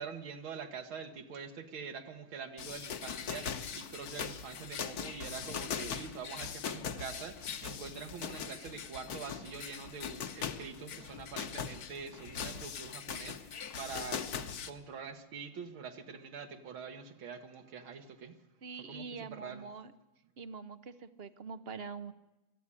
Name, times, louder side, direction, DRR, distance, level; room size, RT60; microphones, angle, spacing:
voice 1, 0.0-14.3 14.7-18.4 18.9-19.7, right 5 dB, 80° right, 5 dB, 2.1 m, -45 dB
sound 1, 2.6-14.7, left 7 dB, 55° left, 1.4 m, -41 dB
voice 2, 18.6-19.9 20.4-22.1, right 5 dB, 55° right, 12 dB, 0.7 m, -44 dB
22.5 x 14.0 x 9.8 m, 1.0 s
omnidirectional pair, 2.2 m